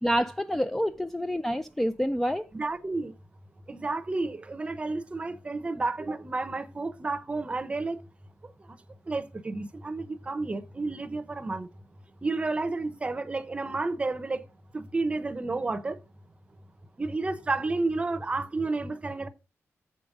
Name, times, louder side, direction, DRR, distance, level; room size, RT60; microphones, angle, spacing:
voice 1, 0.0-2.4, equal, 5° left, 0.3 m, -27 dB
voice 2, 2.5-3.1 3.7-8.0 9.1-11.7 12.2-14.4 14.7-16.0 17.0-19.3, right 3 dB, 25° right, 0.7 m, -31 dB
7.7 x 5.1 x 5.3 m
wide cardioid pair, 170°, 5 cm